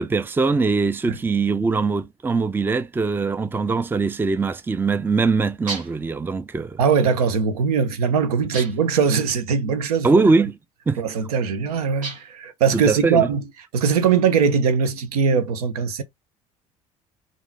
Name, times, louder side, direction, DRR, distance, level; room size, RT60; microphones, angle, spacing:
voice 1, 0.0-6.8 10.0-10.6 10.9-11.0 12.7-13.3, right 4 dB, 10° right, 0.4 m, -21 dB
sound 1, 5.7-6.1 8.5-9.0 12.0-12.5, right 3 dB, 45° right, 1.6 m, -34 dB
voice 2, 6.8-10.2 11.0-13.4 13.7-16.0, right 6 dB, 75° right, 0.7 m, -21 dB
3.8 x 2.5 x 3.9 m
hypercardioid pair, 60°, 19 cm